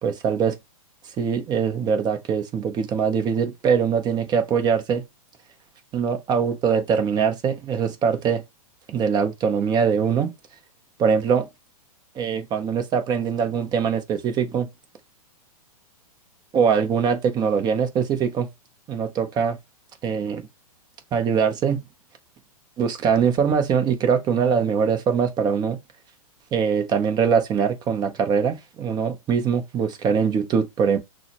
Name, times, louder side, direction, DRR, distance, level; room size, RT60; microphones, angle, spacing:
voice 1, 0.0-0.6 1.2-5.0 5.9-8.4 8.9-10.3 11.0-11.5 12.1-14.7 16.5-18.5 18.9-19.6 20.0-20.5 21.1-21.8 22.8-25.8 26.5-31.0, right 6 dB, 20° right, 0.7 m, -22 dB
6.1 x 2.1 x 2.8 m
hypercardioid pair, 130°, 19 cm